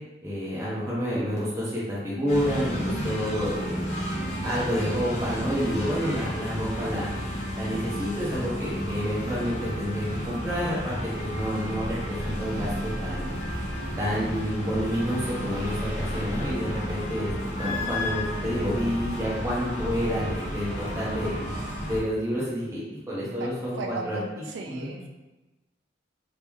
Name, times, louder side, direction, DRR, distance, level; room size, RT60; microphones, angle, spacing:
voice 1, 0.2-3.9 4.4-7.1 7.6-13.3 14.0-17.3 17.6-21.3 21.9-24.2 24.7-24.9, equal, 15° right, -8 dB, 0.8 m, -29 dB
sound 1, 2.3-22.0, equal, 35° left, 0.6 m, -32 dB
voice 2, 23.8-25.1, right 3 dB, 70° right, 3 dB, 0.3 m, -36 dB
3.0 x 2.9 x 3.5 m, 1.1 s
head